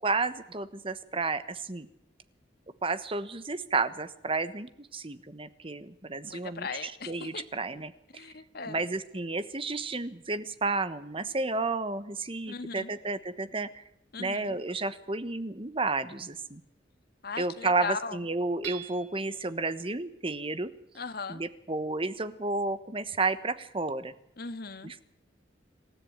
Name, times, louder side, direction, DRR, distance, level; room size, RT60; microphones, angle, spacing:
voice 1, 0.0-1.9 2.8-8.2 8.7-13.8 14.2-16.6 17.4-20.7 21.3-24.1 24.8-25.0, right 3 dB, 30° right, 13 dB, 1.2 m, -32 dB
voice 2, 6.2-7.4 8.1-8.8 12.5-12.9 14.1-14.5 17.2-18.2 20.9-21.4 24.4-24.9, left 4 dB, 55° left, 9 dB, 1.7 m, -38 dB
Hammer / Chink clink, 18.6-19.4, right 10 dB, 75° right, 3.6 m, -43 dB
26.5 x 14.0 x 8.7 m, 0.76 s
head